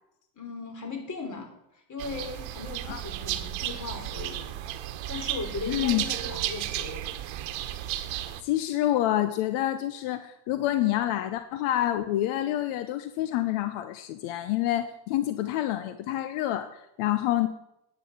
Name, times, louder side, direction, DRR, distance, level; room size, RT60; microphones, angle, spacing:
voice 1, 0.4-1.5 1.9-4.6 5.1-7.1, left 4 dB, 35° left, 4 dB, 4.1 m, -38 dB
sound 1, 2.0-8.4, right 12 dB, 70° right, 1.2 m, -33 dB
voice 2, 5.7-6.0 8.4-17.5, left 13 dB, 80° left, 10 dB, 0.9 m, -27 dB
10.5 x 9.2 x 7.3 m, 0.84 s
supercardioid pair, 100°, 48 cm